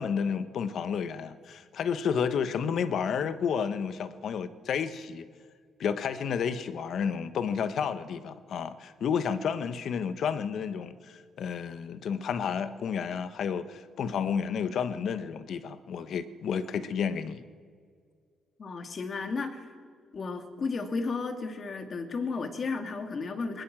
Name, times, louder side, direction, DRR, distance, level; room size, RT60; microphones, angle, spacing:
voice 1, 0.0-5.3 5.8-17.4, left 7 dB, 60° left, 12 dB, 1.2 m, -31 dB
voice 2, 18.6-19.7 20.1-23.6, left 4 dB, 40° left, 7 dB, 2.3 m, -33 dB
21.5 x 19.5 x 7.5 m, 2.1 s
cardioid pair, 120°, 0 cm